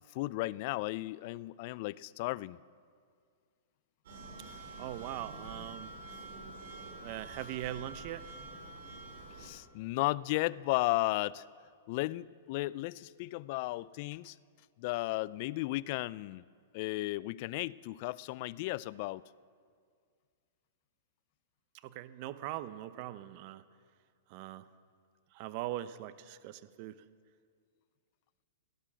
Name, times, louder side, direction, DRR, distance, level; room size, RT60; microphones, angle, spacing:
voice 1, 0.1-2.6 9.4-11.4 11.9-14.4 14.8-16.4 16.7-19.2, left 19 dB, 50° left, 21 dB, 0.3 m, -34 dB
sound 1, 4.0-9.5, right 2 dB, 70° right, 4.3 m, -47 dB
voice 2, 4.8-5.9 7.0-8.3 21.8-23.6 24.3-24.7 25.3-27.0, right 14 dB, 45° right, 14 dB, 0.7 m, -41 dB
17.0 x 11.0 x 7.3 m, 2.1 s
hypercardioid pair, 135°, 0 cm